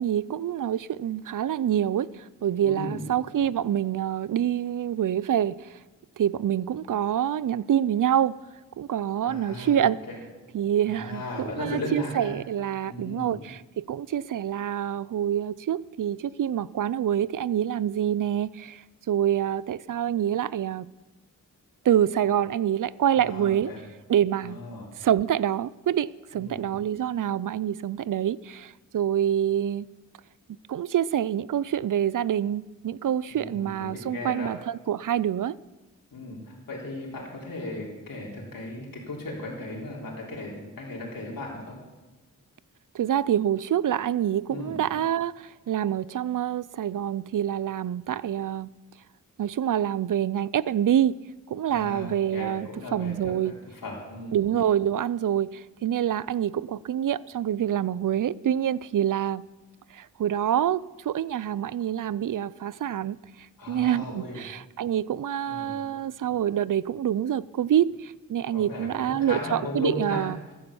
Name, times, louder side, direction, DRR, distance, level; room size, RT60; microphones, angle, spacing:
voice 1, 0.0-5.8 6.2-8.3 8.8-10.0 10.5-20.9 21.8-23.7 24.1-24.6 25.0-29.9 30.7-35.6 42.9-48.7 49.4-51.2 51.5-53.5 54.3-59.4 59.9-70.4, right 10 dB, 65° right, 0.5 m, -26 dB
voice 2, 2.6-3.1 9.2-9.8 10.1-10.2 10.8-12.4 12.9-13.4 23.1-23.8 24.4-24.9 26.3-26.6 33.3-34.5 36.1-41.8 44.5-44.8 51.7-54.4 63.6-64.5 65.5-65.9 68.5-70.3, left 2 dB, 80° left, 3.5 m, -36 dB
14.5 x 10.5 x 7.1 m
wide cardioid pair, 90°, 34 cm